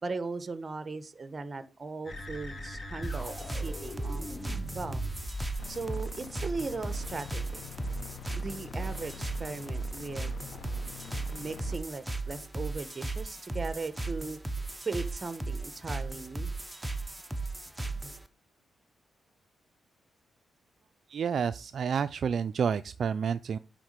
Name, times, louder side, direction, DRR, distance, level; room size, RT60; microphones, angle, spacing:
voice 1, 0.0-5.0 5.7-7.6 8.4-11.0 11.3-14.4 14.8-16.5 17.9-18.0, right 3 dB, 30° right, 12 dB, 1.0 m, -38 dB
sound 1, 2.1-5.7, left 1 dB, 35° left, 1.8 m, -40 dB
sound 2, 3.0-18.3, right 2 dB, 10° right, 0.8 m, -36 dB
sound 3, 5.6-11.8, left 7 dB, 70° left, 0.8 m, -45 dB
voice 2, 21.1-23.6, right 7 dB, 60° right, 12 dB, 0.3 m, -29 dB
9.2 x 3.7 x 6.5 m, 0.32 s
cardioid pair, 100°, 0 cm